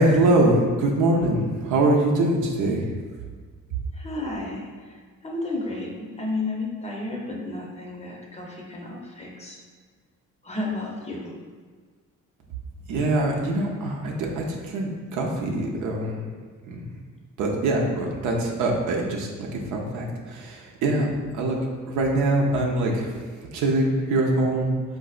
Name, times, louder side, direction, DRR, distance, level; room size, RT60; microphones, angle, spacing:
voice 1, 0.0-2.9 12.9-16.3 16.7-16.9 17.4-21.1 21.3-21.6 21.9-24.7, right 2 dB, 80° right, -1 dB, 0.6 m, -23 dB
voice 2, 4.0-4.7 5.2-9.6 10.4-11.3, left 2 dB, 20° left, -1 dB, 0.6 m, -32 dB
3.8 x 2.6 x 2.4 m, 1.5 s
cardioid pair, 90°, 30 cm